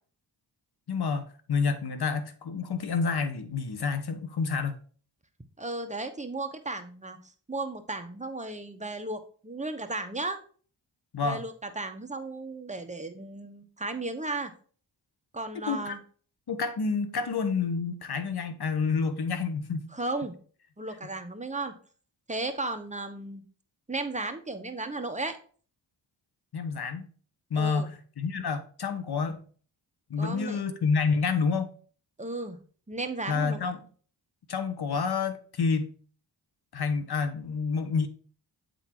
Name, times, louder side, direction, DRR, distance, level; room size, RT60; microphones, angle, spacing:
voice 1, 0.9-4.7 11.1-11.4 15.7-16.0 16.5-19.9 26.5-27.1 27.5-29.4 30.1-31.7 33.3-33.8 34.5-36.0 36.7-38.1, left 5 dB, 55° left, 1.2 m, -29 dB
voice 2, 5.6-7.2 7.5-10.4 11.2-14.5 15.3-16.0 19.9-20.4 20.8-21.8 22.3-23.4 23.9-25.4 27.5-27.9 30.2-30.6 32.2-32.6 32.9-33.7, right 2 dB, 15° right, 1.2 m, -35 dB
8.1 x 4.0 x 4.5 m
cardioid pair, 60°, 45 cm